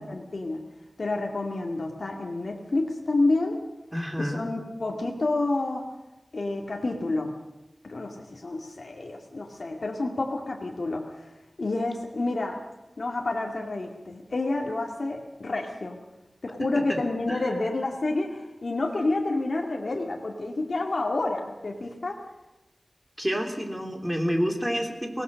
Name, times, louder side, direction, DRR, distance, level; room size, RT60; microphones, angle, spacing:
voice 1, 0.1-0.6 1.0-3.6 4.2-5.9 6.3-7.3 7.8-11.2 11.6-12.6 13.0-16.0 16.4-22.1, left 2 dB, 70° left, 1 dB, 2.3 m, -29 dB
voice 2, 3.9-4.5 16.6-17.0 17.3-17.4 23.2-25.2, equal, 5° right, 4 dB, 3.4 m, -29 dB
23.0 x 19.0 x 6.5 m, 1.0 s
wide cardioid pair, 75°, 0 cm